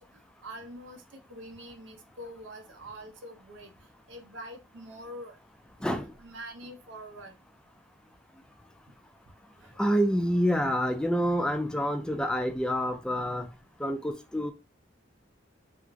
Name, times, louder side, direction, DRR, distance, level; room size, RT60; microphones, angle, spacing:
voice 1, 0.4-3.7 4.1-5.4 5.8-7.3 9.6-9.8, right 1 dB, 75° right, 4 dB, 0.6 m, -45 dB
voice 2, 9.8-13.5 13.8-14.5, equal, 5° left, 5 dB, 0.3 m, -27 dB
2.9 x 2.5 x 2.5 m, 0.27 s
head